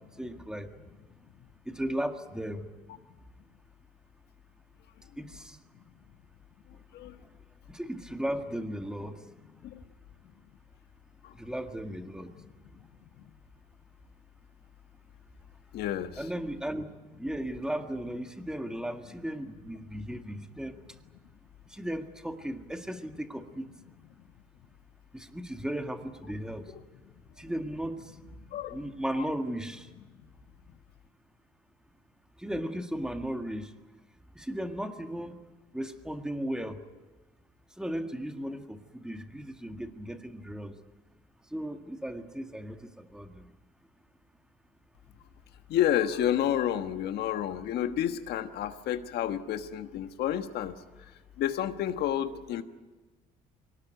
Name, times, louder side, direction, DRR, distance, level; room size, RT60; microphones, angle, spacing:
voice 1, 0.2-0.7 1.7-2.7 5.2-5.6 7.7-9.2 11.3-12.3 16.2-16.9 17.2-20.8 21.7-23.7 25.1-26.7 27.4-28.1 28.7-29.9 32.4-33.7 34.4-35.4 35.7-36.8 37.8-40.8 41.5-43.4, right 1 dB, 5° right, 6 dB, 1.7 m, -36 dB
voice 2, 15.7-16.3 26.7-26.8 28.5-28.9 45.7-50.7 51.4-52.6, left 11 dB, 75° left, 9 dB, 1.4 m, -30 dB
23.5 x 19.0 x 9.3 m, 1.2 s
cardioid pair, 110°, 17 cm